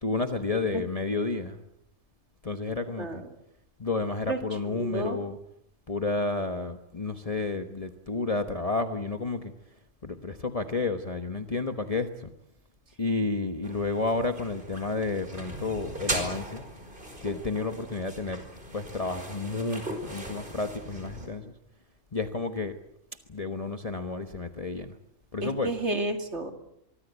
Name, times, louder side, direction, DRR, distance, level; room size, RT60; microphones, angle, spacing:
voice 1, 0.0-1.6 2.4-3.3 3.8-5.4 5.9-9.5 10.0-12.3 13.0-16.7 17.2-18.5 18.7-21.5 22.1-22.8 23.3-25.0 25.3-25.8, left 3 dB, 30° left, 8 dB, 1.2 m, -31 dB
voice 2, 4.7-5.2 25.4-26.5, right 2 dB, 60° right, 6 dB, 3.0 m, -31 dB
sound 1, 13.6-21.3, right 1 dB, 40° right, 5.4 m, -38 dB
25.0 x 23.0 x 8.2 m, 0.76 s
omnidirectional pair, 1.3 m